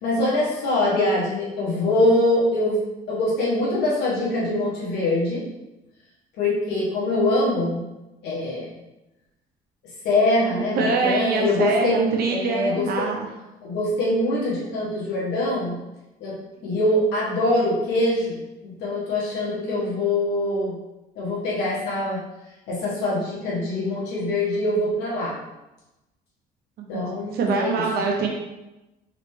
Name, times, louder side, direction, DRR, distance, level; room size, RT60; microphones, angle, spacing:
voice 1, 0.0-2.8 3.1-5.4 6.4-7.9 8.2-8.6 10.0-12.8 13.6-15.8 16.2-16.3 16.6-20.8 21.2-22.2 22.7-25.4 26.9-27.8, left 1 dB, 90° left, -6 dB, 1.3 m, -23 dB
voice 2, 10.5-13.3 26.8-27.0 27.3-28.3, right 3 dB, 65° right, 0 dB, 0.9 m, -24 dB
3.9 x 3.3 x 3.5 m, 1.0 s
cardioid pair, 110°, 17 cm